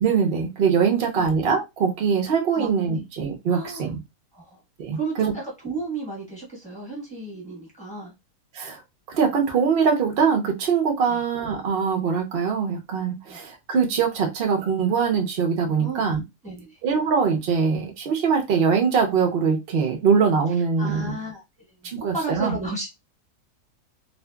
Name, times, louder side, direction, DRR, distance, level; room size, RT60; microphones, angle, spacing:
voice 1, 0.0-4.0 4.8-5.3 8.5-8.8 9.1-16.2 16.8-21.1 21.8-22.6, right 6 dB, 70° right, 0.5 m, -22 dB
voice 2, 0.9-1.3 2.6-3.1 3.5-3.9 4.3-4.6 4.9-8.1 11.0-11.2 13.3-13.4 15.8-16.1 16.4-16.8 20.8-21.7 22.1-22.9, right 2 dB, 5° left, 0.9 m, -34 dB
2.7 x 2.5 x 2.2 m
omnidirectional pair, 1.7 m